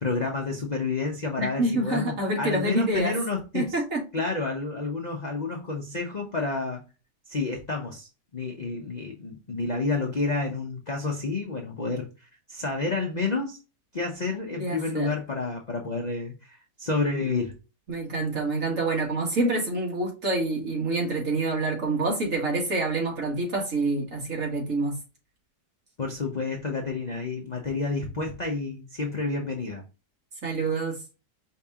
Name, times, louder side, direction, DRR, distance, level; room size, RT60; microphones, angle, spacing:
voice 1, 0.0-3.8 4.1-6.8 7.3-13.6 13.9-17.5 26.0-29.8, left 3 dB, 45° left, 0.6 m, -30 dB
voice 2, 1.4-3.1 3.5-4.0 14.6-15.1 17.9-25.0 30.4-31.0, right 2 dB, 50° right, 1.9 m, -27 dB
5.1 x 2.8 x 3.5 m
omnidirectional pair, 1.8 m